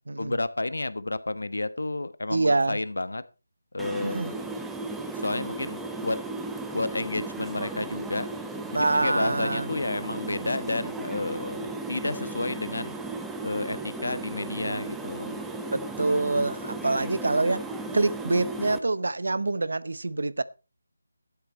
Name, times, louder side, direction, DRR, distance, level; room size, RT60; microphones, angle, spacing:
voice 1, 0.2-3.2 3.7-4.5 5.1-6.2 6.7-8.3 8.7-13.0 13.4-15.4, left 2 dB, 85° left, 15 dB, 1.2 m, -31 dB
voice 2, 2.3-2.8 4.0-4.3 8.7-9.7 15.7-17.6 17.9-20.4, right 2 dB, 70° right, 18 dB, 0.9 m, -25 dB
sound 1, 3.8-18.8, right 2 dB, 5° right, 0.7 m, -35 dB
12.0 x 9.9 x 4.3 m, 0.31 s
figure-of-eight pair, 170°, 0 cm